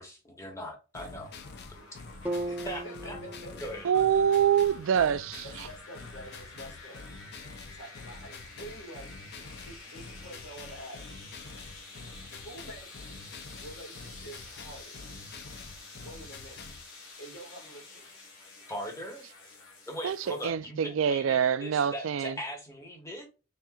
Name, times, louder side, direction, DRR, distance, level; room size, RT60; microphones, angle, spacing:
voice 1, 0.0-1.3 2.6-3.2 3.5-3.9 18.7-19.3 19.9-23.3, equal, 15° left, 1.0 m, -40 dB
sound 1, 0.9-16.9, left 4 dB, 50° left, 0.5 m, -47 dB
sound 2, 1.0-20.5, left 3 dB, 85° left, 1.4 m, -49 dB
sound 3, 2.2-6.3, right 1 dB, 10° right, 0.5 m, -40 dB
voice 2, 2.4-3.7 5.4-7.0 7.6-9.1 9.4-11.3 12.4-12.9 13.6-15.1 16.0-16.6 17.2-18.1, right 1 dB, 70° left, 1.9 m, -47 dB
voice 3, 3.8-5.4 20.0-22.3, right 8 dB, 65° right, 0.3 m, -25 dB
4.3 x 3.6 x 2.3 m
head